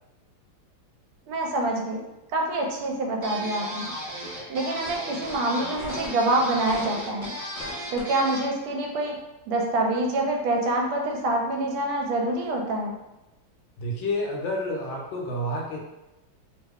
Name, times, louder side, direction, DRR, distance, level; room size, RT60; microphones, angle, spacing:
voice 1, 1.3-2.0 2.3-3.9 4.5-7.3 7.9-9.2 9.5-13.0, right 2 dB, 80° right, 1 dB, 1.4 m, -26 dB
sound 1, 3.2-8.5, equal, 40° right, 0.9 m, -36 dB
sound 2, 4.8-5.0 5.2-5.3 5.7-6.2 6.7-7.3 7.6-8.0, left 1 dB, 55° left, 0.8 m, -39 dB
voice 2, 13.8-15.8, left 1 dB, 75° left, -1 dB, 1.4 m, -29 dB
3.5 x 2.1 x 3.5 m, 0.98 s
omnidirectional pair, 2.3 m